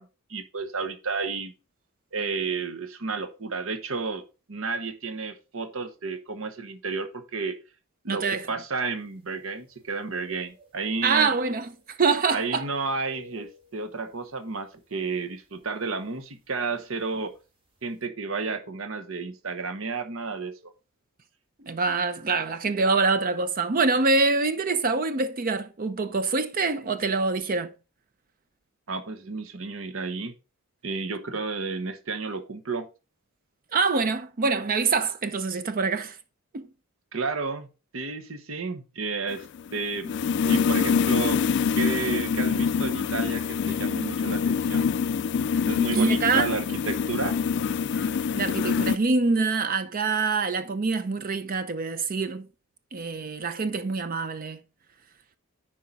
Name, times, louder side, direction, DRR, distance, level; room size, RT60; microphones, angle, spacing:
voice 1, 0.0-1.5 2.1-4.2 4.5-7.6 8.0-11.3 12.3-17.3 17.8-20.7 28.9-30.3 30.8-32.9 37.1-37.7 37.9-39.5 39.7-40.1 40.5-41.4 41.7-44.9 45.7-47.4, right 4 dB, 65° right, 1.0 m, -31 dB
voice 2, 8.1-8.5 11.0-12.7 21.6-27.7 33.7-36.2 36.5-36.7 45.9-46.5 47.9-48.1 48.4-52.5 52.9-54.6, right 4 dB, 40° right, 0.5 m, -25 dB
sound 1, 9.1-9.2 9.5-10.8 11.0-11.9 12.2-14.3 14.7-14.9 15.6-15.8 16.9-17.0 17.3-17.4, equal, 25° right, 2.3 m, -50 dB
sound 2, 39.3-49.0, left 6 dB, 55° left, 0.3 m, -25 dB
10.0 x 4.7 x 4.1 m
head